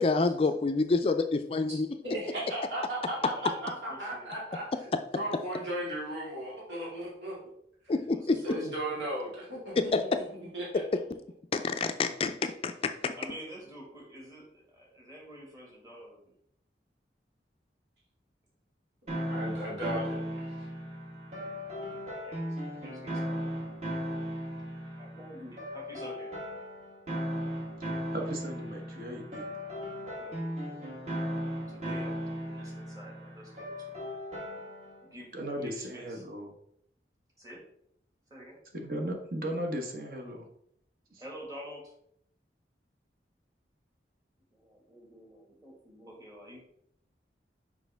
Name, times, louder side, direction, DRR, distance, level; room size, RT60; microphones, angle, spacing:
voice 1, 0.0-1.9 7.9-8.4 9.8-10.2 11.5-12.7 13.0-13.1, left 3 dB, 35° left, 9 dB, 0.3 m, -27 dB
voice 2, 2.0-4.7 5.1-7.3 8.4-10.7 19.3-20.7, right 1 dB, 90° right, -6 dB, 2.3 m, -36 dB
voice 3, 3.1-4.6 8.0-8.8 13.2-16.3 21.7-23.5 24.7-26.5 29.9-31.3 31.7-34.1 35.0-36.2 37.4-37.6 38.3-38.6 41.2-41.9 44.5-46.6, equal, 20° right, -2 dB, 1.8 m, -49 dB
sound 1, 19.1-35.0, equal, 40° right, 1.4 m, -37 dB
voice 4, 28.1-29.4 35.3-36.5 38.7-40.5 41.1-41.2, equal, 55° right, 2 dB, 1.1 m, -36 dB
6.3 x 5.0 x 3.4 m, 0.71 s
head